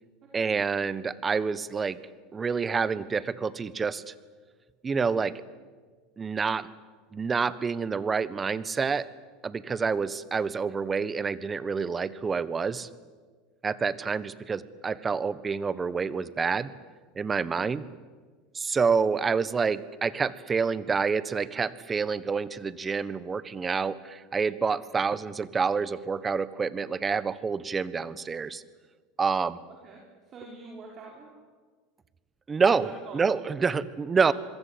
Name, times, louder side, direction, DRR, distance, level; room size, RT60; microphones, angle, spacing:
voice 1, 0.3-2.0 2.3-4.1 4.8-5.4 6.2-6.7 7.1-9.1 9.4-12.9 13.6-16.7 17.1-17.8 18.5-28.6 29.2-29.6 32.5-34.3, right 5 dB, 25° right, 17 dB, 1.3 m, -28 dB
voice 2, 29.8-31.4 32.5-33.3 34.1-34.3, right 4 dB, 40° right, -2 dB, 5.7 m, -45 dB
26.5 x 22.0 x 8.7 m, 1.5 s
hypercardioid pair, 95°, 0 cm